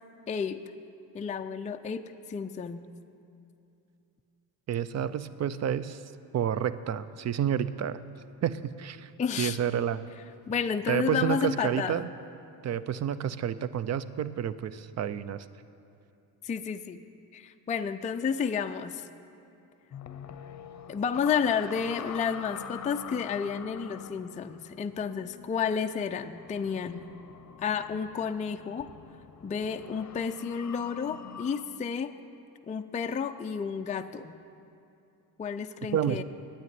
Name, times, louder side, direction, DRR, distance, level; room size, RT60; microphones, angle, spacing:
voice 1, 0.3-0.6 1.1-2.9 9.2-9.6 10.5-12.0 16.4-17.0 17.3-19.1 20.9-27.1 27.6-28.9 29.4-32.1 32.7-34.3 35.4-36.2, left 6 dB, 20° left, 7 dB, 0.4 m, -31 dB
voice 2, 4.7-6.0 6.3-8.0 8.4-9.1 9.4-10.1 10.9-12.1 12.6-15.4 35.9-36.2, right 9 dB, 45° right, 15 dB, 0.5 m, -29 dB
sound 1, 19.9-31.6, left 8 dB, 45° left, 0.7 m, -45 dB
9.5 x 8.8 x 9.4 m, 2.7 s
cardioid pair, 95°, 39 cm